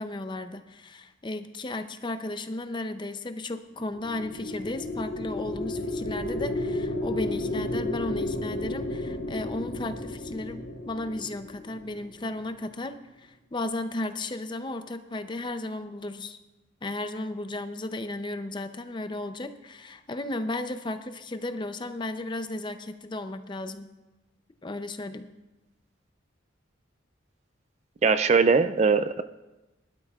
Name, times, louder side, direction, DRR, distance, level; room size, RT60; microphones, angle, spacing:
voice 1, 0.0-16.4 16.8-23.9 24.6-25.3, left 2 dB, 25° left, 9 dB, 0.5 m, -34 dB
sound 1, 3.8-12.3, left 2 dB, 85° left, 2.4 m, -33 dB
voice 2, 28.0-29.2, right 5 dB, 35° right, 11 dB, 0.3 m, -21 dB
20.5 x 12.0 x 2.4 m, 1.1 s
head